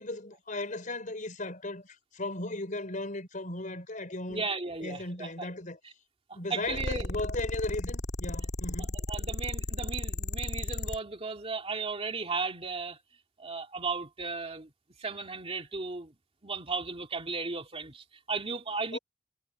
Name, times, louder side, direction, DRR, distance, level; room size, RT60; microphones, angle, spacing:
voice 1, 0.0-4.5 4.8-5.8 6.3-9.0 18.9-19.0, left 2 dB, 45° left, 5.2 m, -36 dB
voice 2, 4.3-5.5 6.3-7.1 9.1-13.0 13.4-14.7 15.0-16.2 16.4-19.0, right 4 dB, 30° right, 2.5 m, -35 dB
sound 1, 6.7-11.0, left 1 dB, 65° left, 2.5 m, -34 dB
head